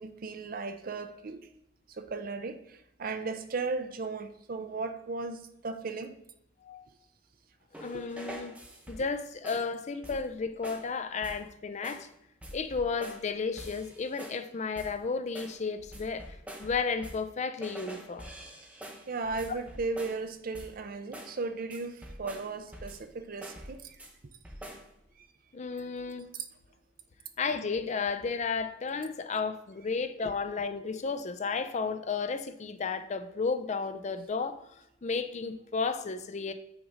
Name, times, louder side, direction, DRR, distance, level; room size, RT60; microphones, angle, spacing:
voice 1, 0.0-1.5 1.9-6.1 7.9-8.0 19.1-24.0, right 3 dB, 50° right, 0.6 m, -36 dB
sound 1, 7.7-9.2 9.4-9.7 10.0-10.4 10.6-10.9 11.2-11.5 11.8-12.1 12.4-13.3 13.6-14.5 14.8-15.0 15.4-17.3 17.6-20.3 20.5-20.8 21.1-21.4 21.7-23.1 23.4-24.1 24.4-24.9, equal, 10° right, 0.9 m, -46 dB
voice 2, 7.8-8.6 8.9-12.1 12.5-18.3 25.5-26.3 27.4-34.6 35.0-36.5, left 4 dB, 40° left, 0.5 m, -33 dB
5.9 x 4.0 x 5.0 m
head